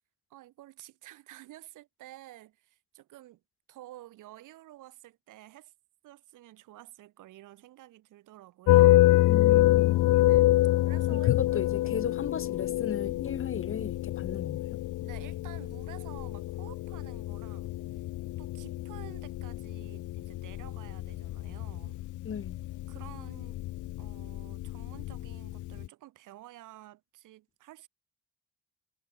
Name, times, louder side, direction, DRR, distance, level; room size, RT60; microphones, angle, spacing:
voice 1, 0.3-3.4 3.7-5.7 6.0-9.1 10.2-10.6 10.9-11.3 11.8-11.9 15.0-18.0 18.4-22.0 22.9-23.6 24.0-27.9, right 15 dB, 90° right, 7.7 m, -51 dB
sound 1, 8.7-25.9, left 16 dB, 85° left, 1.3 m, -27 dB
voice 2, 9.2-10.1 11.1-14.8 22.2-22.6, left 7 dB, 45° left, 2.8 m, -36 dB
cardioid pair, 90°, 30 cm